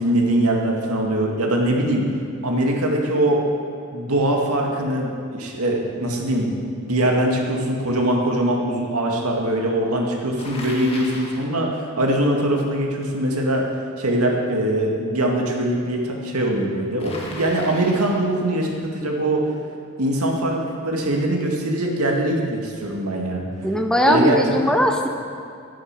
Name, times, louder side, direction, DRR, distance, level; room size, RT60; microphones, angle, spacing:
voice 1, 0.0-2.1 2.4-3.4 3.9-6.6 6.9-13.7 14.0-19.4 20.0-23.4 24.0-24.4 24.6-24.8, right 1 dB, 90° right, 0 dB, 2.1 m, -22 dB
Bicycle, 10.4-11.5 17.0-18.3, left 2 dB, 25° left, 1.9 m, -37 dB
voice 2, 23.6-25.1, equal, 5° left, 3 dB, 0.6 m, -19 dB
10.5 x 10.0 x 7.6 m, 2.4 s
head